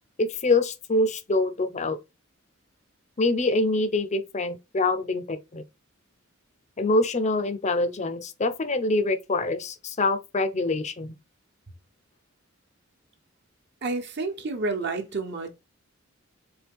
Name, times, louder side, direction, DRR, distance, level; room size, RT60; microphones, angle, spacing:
voice 1, 0.2-2.0 3.2-5.6 6.8-11.1, left 2 dB, 35° left, 0.5 m, -25 dB
voice 2, 13.8-15.5, right 3 dB, 55° right, 1.0 m, -29 dB
4.4 x 3.3 x 3.5 m
head